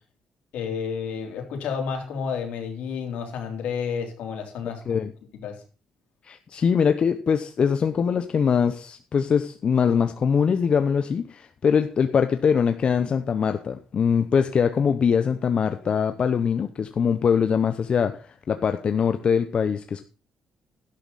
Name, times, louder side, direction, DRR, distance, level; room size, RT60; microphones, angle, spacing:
voice 1, 0.5-5.0 5.4-5.6, left 6 dB, 80° left, 3.5 m, -31 dB
voice 2, 6.2-20.0, left 6 dB, 50° left, 0.9 m, -22 dB
12.0 x 11.5 x 4.1 m
cardioid pair, 85°, 2 cm